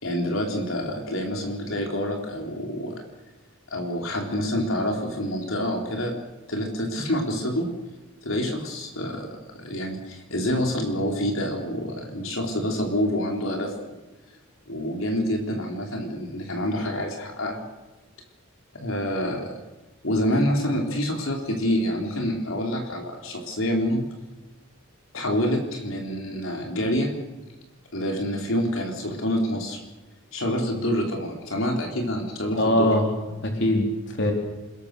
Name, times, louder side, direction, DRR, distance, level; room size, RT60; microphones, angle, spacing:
voice 1, 0.0-2.9 3.7-6.1 6.5-7.7 8.2-9.3 9.6-14.0 14.7-17.6 18.7-19.5 20.0-24.0 25.1-27.1 27.9-29.8 30.3-32.9, equal, 70° left, 2 dB, 4.1 m, -27 dB
voice 2, 32.5-33.1 33.4-34.3, left 1 dB, 55° left, 2 dB, 4.1 m, -22 dB
29.0 x 20.5 x 6.9 m, 1.1 s
head